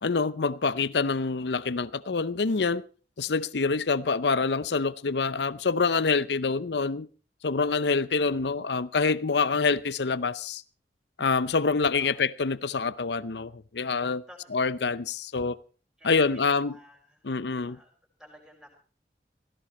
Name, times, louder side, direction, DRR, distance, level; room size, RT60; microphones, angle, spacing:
voice 1, 0.0-2.8 3.2-7.1 7.4-10.6 11.2-14.2 14.5-15.6 16.0-16.7 17.2-17.8, left 4 dB, 75° left, 0.7 m, -26 dB
voice 2, 14.3-14.8 16.0-17.3 17.6-17.9 18.2-18.8, equal, 5° right, 5.1 m, -53 dB
16.5 x 16.5 x 4.2 m
head